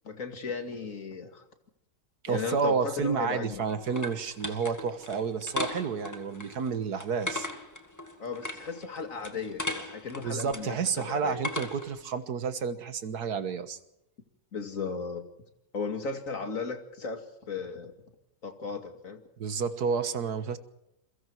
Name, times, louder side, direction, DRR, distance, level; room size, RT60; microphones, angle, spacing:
voice 1, 0.0-1.4 2.3-3.6 8.2-11.4 14.5-15.3 15.7-17.9 18.4-19.2, left 5 dB, 45° left, 6 dB, 2.6 m, -36 dB
voice 2, 2.2-7.5 10.2-13.8 19.4-20.6, right 5 dB, 60° right, 11 dB, 1.9 m, -30 dB
sound 1, 3.2-12.0, left 2 dB, 10° left, 1.9 m, -39 dB
28.5 x 23.0 x 4.7 m, 0.83 s
omnidirectional pair, 1.9 m